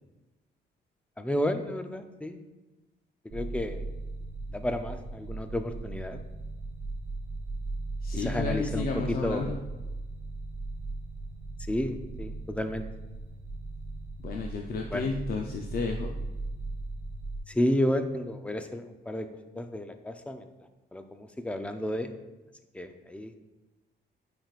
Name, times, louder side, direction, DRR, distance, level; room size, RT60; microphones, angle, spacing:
voice 1, 1.2-2.4 3.3-3.8 4.5-6.2 8.1-9.5 11.7-12.8 14.9-15.1 17.5-19.3 19.6-20.5 20.9-22.1 22.7-23.4, left 1 dB, 5° left, 7 dB, 0.5 m, -31 dB
sound 1, 3.3-17.4, right 2 dB, 50° right, 0.9 m, -37 dB
voice 2, 8.0-9.5 14.2-16.1, left 4 dB, 55° left, 1 dB, 0.6 m, -32 dB
9.0 x 5.1 x 2.4 m, 1.1 s
cardioid pair, 125°, 18 cm